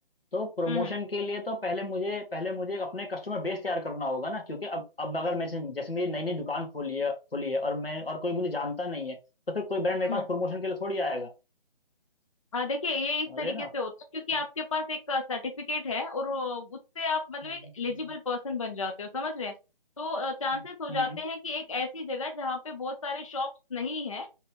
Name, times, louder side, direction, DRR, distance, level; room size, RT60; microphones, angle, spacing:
voice 1, 0.3-9.2 9.5-11.3 13.3-13.7 17.4-18.1 20.5-21.2, left 2 dB, 80° left, 1.3 m, -32 dB
voice 2, 12.5-19.5 20.0-24.3, left 3 dB, 35° left, 0.4 m, -32 dB
3.0 x 2.8 x 3.3 m
figure-of-eight pair, 145°, 29 cm